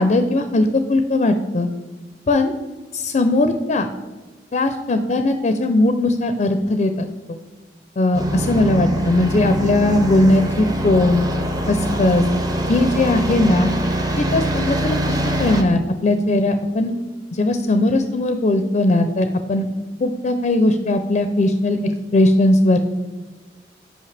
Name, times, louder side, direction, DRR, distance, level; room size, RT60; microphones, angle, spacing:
voice 1, 0.0-1.7 2.3-2.5 2.9-3.9 4.5-7.1 8.0-11.2 11.7-12.2 12.7-13.8 14.2-16.9 17.3-19.7 20.0-21.8 22.1-22.8, left 2 dB, 40° left, 8 dB, 0.4 m, -18 dB
sound 1, 8.1-15.6, right 1 dB, 20° right, 0.6 m, -23 dB
8.4 x 5.3 x 3.3 m, 1.3 s
head